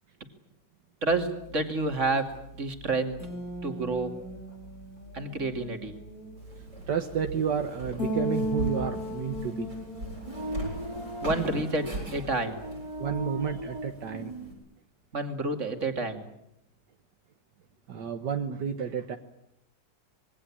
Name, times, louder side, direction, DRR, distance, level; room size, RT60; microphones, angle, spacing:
voice 1, 1.0-3.2 3.6-4.2 5.1-6.0 11.2-12.6 15.1-16.2, right 2 dB, 40° right, 6 dB, 2.9 m, -29 dB
sound 1, 1.1-13.6, equal, 55° left, 6.1 m, -38 dB
Walk footsteps, 6.4-14.5, right 2 dB, 90° right, 8.3 m, -40 dB
voice 2, 6.9-9.8 13.0-14.3 17.9-19.2, right 7 dB, 75° right, 7 dB, 1.9 m, -31 dB
sound 2, 10.2-14.5, equal, 15° right, 2.3 m, -38 dB
26.0 x 22.0 x 8.7 m, 0.78 s
omnidirectional pair, 1.9 m